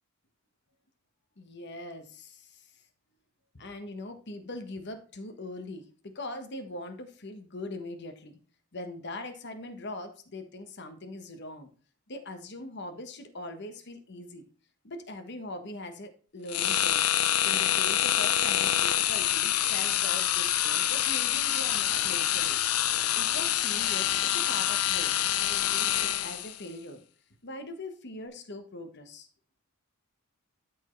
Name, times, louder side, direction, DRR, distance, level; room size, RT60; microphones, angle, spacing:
voice 1, 1.4-2.7 3.5-8.4 8.7-11.7 12.1-14.4 14.8-17.0 17.4-22.6 23.1-25.1 25.4-27.0 27.4-29.3, left 2 dB, 50° left, 7 dB, 1.3 m, -41 dB
sound 1, 16.5-26.6, left 11 dB, 85° left, 0.6 m, -26 dB
12.5 x 4.6 x 3.2 m, 0.42 s
head